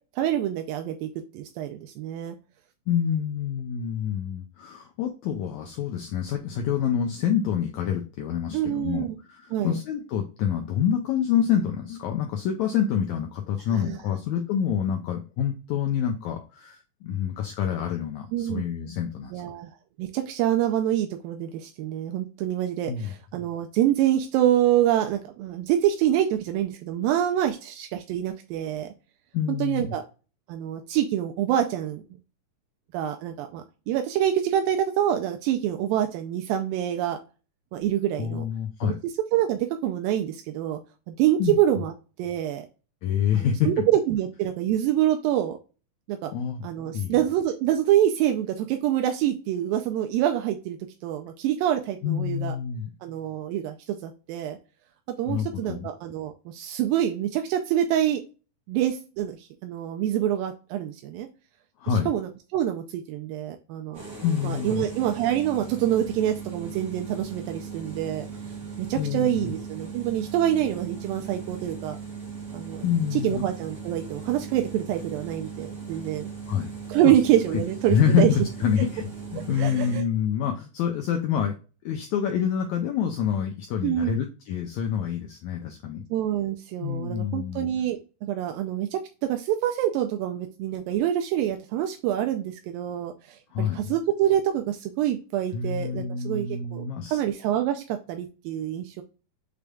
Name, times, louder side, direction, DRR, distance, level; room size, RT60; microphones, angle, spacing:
voice 1, 0.2-1.1 1.3-2.4 8.5-9.2 9.5-9.7 13.7-14.0 18.3-18.6 19.3-19.7 20.0-28.9 29.6-30.0 30.5-32.0 32.9-37.2 37.7-38.5 38.8-38.9 39.3-40.8 41.1-41.9 42.2-42.7 43.3-45.6 46.1-46.3 46.6-50.8 51.0-52.6 53.0-54.6 55.2-58.2 58.7-61.3 61.9-64.1 64.4-68.3 68.8-72.0 72.5-72.8 73.1-76.3 76.9-78.3 79.6-80.0 83.8-84.2 86.1-99.0, right 11 dB, 85° right, 5 dB, 2.3 m, -26 dB
voice 2, 2.9-19.3 22.9-23.1 29.3-29.9 38.2-39.0 41.4-41.6 43.0-43.8 46.3-46.6 46.9-47.2 52.0-52.9 55.3-55.9 61.8-62.1 64.2-64.8 68.9-69.5 72.8-73.4 76.5-76.7 77.0-77.1 77.5-77.6 77.9-81.5 81.8-86.0 86.8-87.7 93.5-93.9 95.5-97.2, left 8 dB, 85° left, 4 dB, 1.6 m, -27 dB
sound 1, 63.9-80.0, right 5 dB, 40° right, 1.9 m, -38 dB
6.4 x 3.4 x 2.3 m, 0.33 s
omnidirectional pair, 4.0 m